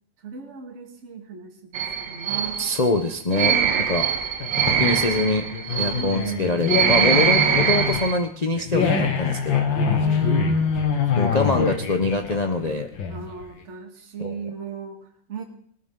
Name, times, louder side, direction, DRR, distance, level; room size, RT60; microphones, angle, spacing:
voice 1, 0.2-2.6 3.3-3.9 5.8-6.6 7.2-7.8 10.0-10.8 11.1-11.9 13.1-15.4, right 5 dB, 40° right, 2 dB, 2.0 m, -37 dB
sound 1, 1.7-8.2, right 8 dB, 75° right, 1.8 m, -23 dB
voice 2, 2.6-3.5 3.9-4.0 4.8-5.5 5.8-9.6 11.2-12.9 14.2-14.3, left 2 dB, 65° left, 4 dB, 0.4 m, -24 dB
sound 2, 4.4-13.4, left 5 dB, 85° left, 2.2 m, -24 dB
19.5 x 13.0 x 3.8 m, 0.63 s
omnidirectional pair, 2.0 m